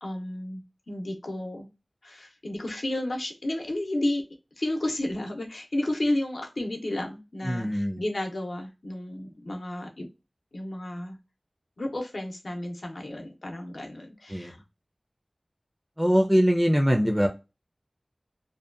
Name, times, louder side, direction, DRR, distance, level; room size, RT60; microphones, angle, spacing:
voice 1, 0.0-1.7 2.0-4.2 4.6-10.1 10.5-11.2 11.8-14.6, left 1 dB, 85° left, 2 dB, 0.6 m, -32 dB
voice 2, 7.4-8.0 14.3-14.6 16.0-17.3, equal, 10° right, 3 dB, 0.4 m, -22 dB
2.6 x 2.2 x 2.4 m, 0.27 s
wide cardioid pair, 50°, 0 cm